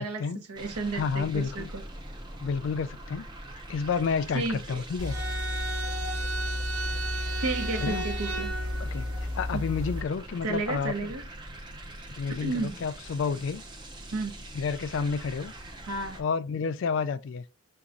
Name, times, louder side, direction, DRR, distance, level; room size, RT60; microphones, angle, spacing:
voice 1, 0.0-1.8 4.3-4.8 7.4-8.5 10.4-11.2 12.3-12.8 14.1-14.3 15.9-16.2, right 3 dB, 90° right, 0.8 m, -32 dB
sound 1, 0.5-16.2, right 1 dB, 20° right, 0.5 m, -44 dB
voice 2, 0.9-1.7 2.4-3.3 3.7-5.2 7.8-8.0 8.8-9.1 9.3-11.1 12.1-13.6 14.5-15.5 16.1-17.4, left 5 dB, 55° left, 0.3 m, -30 dB
sound 2, 5.0-10.0, equal, 75° right, 1.3 m, -31 dB
5.9 x 2.3 x 2.5 m
head